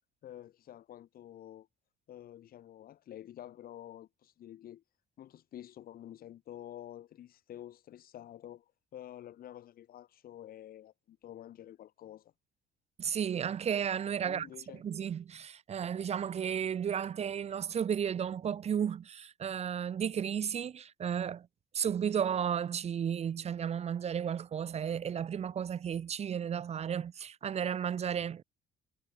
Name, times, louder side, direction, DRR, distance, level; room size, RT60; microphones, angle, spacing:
voice 1, 0.2-1.7 2.1-4.8 5.2-8.6 8.9-12.3 14.2-14.8, left 11 dB, 60° left, 3.3 m, -49 dB
voice 2, 13.0-14.5 14.7-21.5 21.7-28.4, right 8 dB, 40° right, 0.8 m, -33 dB
cardioid pair, 110°, 17 cm